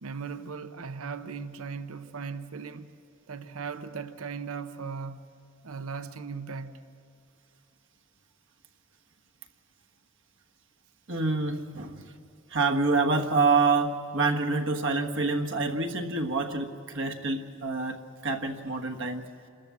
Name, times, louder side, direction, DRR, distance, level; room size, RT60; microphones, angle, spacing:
voice 1, 0.0-2.9 3.3-5.2 5.6-6.8, right 5 dB, 80° right, 0.8 m, -38 dB
voice 2, 11.1-12.1 12.5-18.0 18.2-19.2, right 3 dB, 60° right, 1.4 m, -27 dB
27.5 x 13.5 x 8.4 m
head